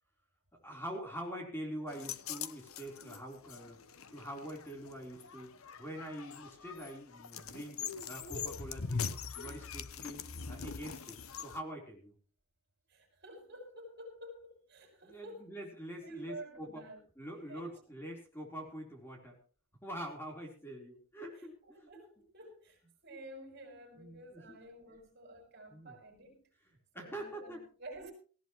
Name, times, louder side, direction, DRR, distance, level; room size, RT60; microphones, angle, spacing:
voice 1, 0.6-3.8 4.1-5.5 5.8-7.8 8.1-10.2 10.5-12.1 15.0-16.8 17.2-19.4 19.8-21.5 21.8-21.9 24.0-24.6 25.7-26.0 26.9-27.6, equal, 10° left, 4.1 m, -45 dB
sound 1, 1.9-11.6, left 6 dB, 90° left, 1.1 m, -42 dB
voice 2, 12.9-15.5 16.0-17.0 17.3-17.8 21.3-26.5 26.9-28.1, right 1 dB, 50° right, 6.5 m, -51 dB
18.5 x 16.5 x 3.2 m
head